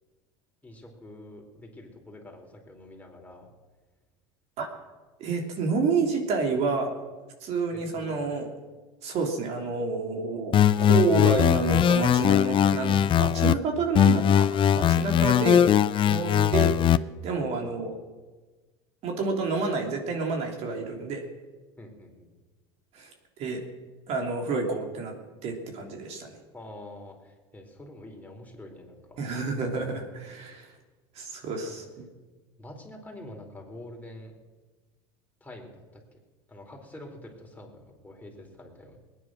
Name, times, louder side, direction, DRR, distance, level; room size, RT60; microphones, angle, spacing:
voice 1, 0.6-3.5 7.7-8.2 15.4-15.8 17.4-17.7 21.8-22.3 26.5-29.2 31.5-31.8 32.6-34.3 35.4-35.8 36.1-36.2 36.5-39.0, left 1 dB, 10° left, 1 dB, 4.4 m, -46 dB
voice 2, 5.2-6.9 7.4-8.5 9.0-14.5 14.7-15.6 16.0-17.9 19.0-21.2 22.9-23.1 23.4-23.6 24.1-25.1 25.4-26.4 29.2-30.7 31.1-31.8, right 4 dB, 55° right, 2 dB, 3.2 m, -29 dB
sound 1, 10.5-13.5 13.9-17.0, left 10 dB, 40° left, 0.6 m, -20 dB
20.5 x 10.0 x 6.3 m, 1.3 s
hypercardioid pair, 85°, 13 cm